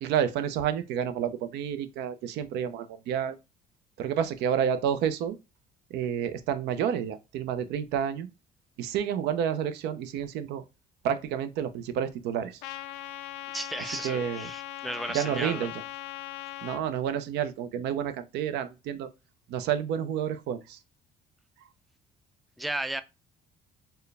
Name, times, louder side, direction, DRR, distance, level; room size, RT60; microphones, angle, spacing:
voice 1, 0.0-3.4 4.0-5.4 5.9-8.3 8.8-10.6 11.0-12.6 13.9-14.5 15.1-15.7 16.6-19.1 19.5-20.8, right 9 dB, 85° right, 0.6 m, -30 dB
Trumpet, 12.6-16.8, left 15 dB, 85° left, 0.4 m, -39 dB
voice 2, 13.5-15.7 22.6-23.0, right 1 dB, ahead, 0.3 m, -34 dB
4.4 x 2.1 x 3.3 m
cardioid pair, 110°, 17 cm